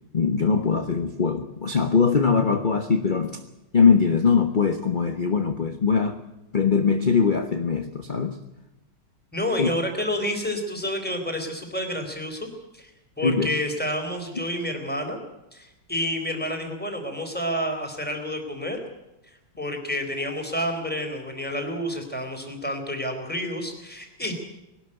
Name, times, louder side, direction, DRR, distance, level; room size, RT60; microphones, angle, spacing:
voice 1, 0.1-3.4 3.7-6.2 6.5-8.4 9.6-9.7 13.2-13.5 14.3-14.4, left 5 dB, 30° left, 7 dB, 1.0 m, -21 dB
voice 2, 9.3-12.5 12.7-12.9 13.2-15.2 15.5-18.8 19.6-24.3, equal, 5° left, 4 dB, 3.9 m, -29 dB
21.0 x 12.5 x 9.9 m, 0.95 s
omnidirectional pair, 2.1 m